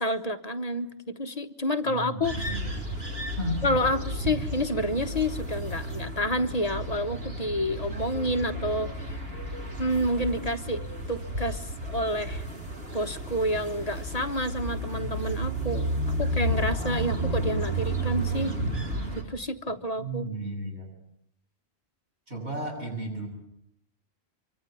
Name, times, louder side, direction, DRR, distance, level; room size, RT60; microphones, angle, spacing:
voice 1, 0.0-2.5 3.6-8.9 9.8-10.8 11.1-12.4 12.9-18.6 19.1-20.3, equal, 35° left, 8 dB, 1.3 m, -29 dB
voice 2, 1.9-2.8 3.4-3.6 20.0-20.9 22.3-23.3, right 1 dB, 85° right, 1 dB, 8.1 m, -34 dB
sound 1, 2.2-19.2, right 1 dB, 70° right, 4.5 m, -32 dB
25.0 x 24.5 x 9.5 m, 0.75 s
omnidirectional pair, 1.1 m